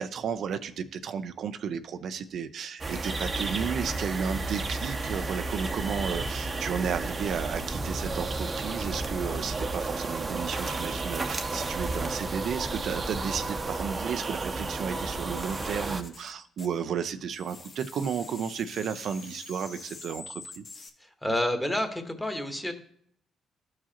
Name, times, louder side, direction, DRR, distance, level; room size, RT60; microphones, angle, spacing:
voice 1, 0.0-20.6, right 7 dB, 65° right, 9 dB, 0.5 m, -33 dB
sound 1, 2.8-16.0, right 3 dB, 30° right, 0.7 m, -32 dB
sound 2, 14.9-17.1 17.3-20.9, left 3 dB, 50° left, 1.2 m, -46 dB
voice 2, 21.0-22.7, left 1 dB, 10° left, 5 dB, 1.2 m, -29 dB
13.0 x 4.8 x 2.9 m, 0.65 s
cardioid pair, 90°, 0 cm